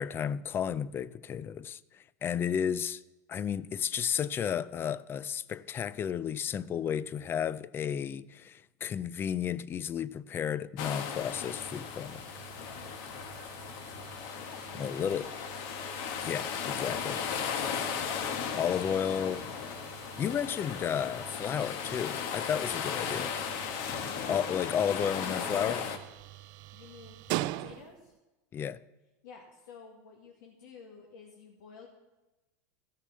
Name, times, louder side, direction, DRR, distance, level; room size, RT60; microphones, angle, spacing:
voice 1, 0.0-1.8 2.2-3.0 3.3-12.3 14.8-15.3 16.2-17.2 18.5-19.4 20.2-23.3 24.3-25.9 28.5-28.8, left 8 dB, 25° left, 0.3 m, -32 dB
sound 1, 10.8-26.0, left 7 dB, 55° left, 1.2 m, -36 dB
sound 2, 11.3-28.2, right 17 dB, 50° right, 0.4 m, -45 dB
voice 2, 12.6-13.0 14.4-15.3 18.4-19.3 24.4-24.7 26.7-28.1 29.2-31.9, left 5 dB, 80° left, 1.9 m, -52 dB
14.0 x 6.7 x 6.4 m
supercardioid pair, 125°, 10 cm